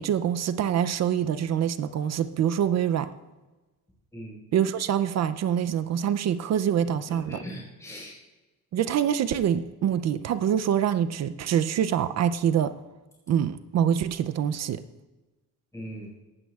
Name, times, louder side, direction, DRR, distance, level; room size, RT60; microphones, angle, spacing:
voice 1, 0.0-3.1 4.5-7.4 8.7-12.7 13.3-14.8, right 9 dB, 45° right, 12 dB, 0.4 m, -25 dB
voice 2, 6.8-8.2 15.7-16.1, equal, 10° left, -5 dB, 4.5 m, -40 dB
17.5 x 12.5 x 2.3 m, 1.2 s
cardioid pair, 175°, 37 cm